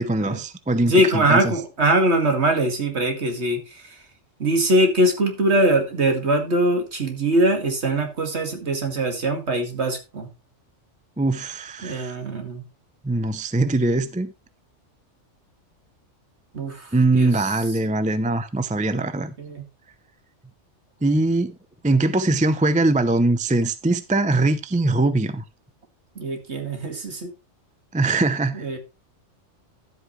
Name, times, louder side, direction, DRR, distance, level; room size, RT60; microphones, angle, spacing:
voice 1, 0.0-1.4 11.2-12.2 13.0-14.3 16.9-19.3 21.0-21.5 21.8-25.4 27.9-28.8, right 2 dB, 10° right, 0.5 m, -22 dB
voice 2, 0.8-4.0 4.4-10.3 11.8-12.6 16.5-17.5 18.9-19.1 19.4-19.7 26.2-27.3 28.5-28.8, right 1 dB, 60° right, 2.3 m, -22 dB
12.0 x 8.1 x 3.1 m
omnidirectional pair, 1.3 m